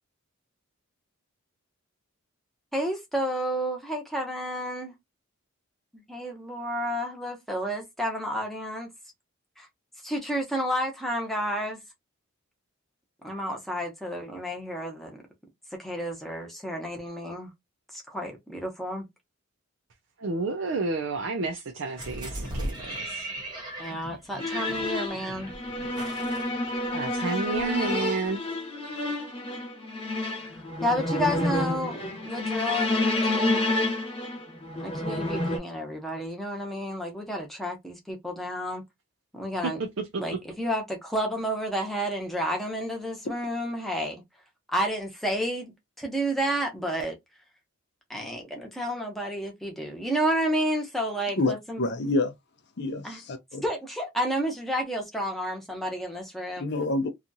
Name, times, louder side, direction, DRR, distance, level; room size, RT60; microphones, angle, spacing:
voice 1, 2.7-4.9 5.9-8.9 9.6-9.7 10.0-11.8 13.2-15.2 15.8-17.5 17.9-19.1 23.8-25.5 30.4-33.7 34.8-38.8 39.3-39.8 40.2-44.2 44.7-47.1 48.1-51.8 53.0-53.2 53.6-56.7, equal, ahead, 0.8 m, -31 dB
voice 2, 20.2-23.3 26.9-28.4 40.0-40.2, right 3 dB, 60° right, 0.5 m, -30 dB
sound 1, 22.0-27.2 27.6-27.7, right 1 dB, 20° right, 1.0 m, -37 dB
sound 2, 24.4-35.6, left 2 dB, 25° left, 0.9 m, -29 dB
voice 3, 51.4-52.3 52.8-53.6 56.6-57.1, left 2 dB, 50° left, 0.5 m, -28 dB
2.8 x 2.3 x 2.6 m
head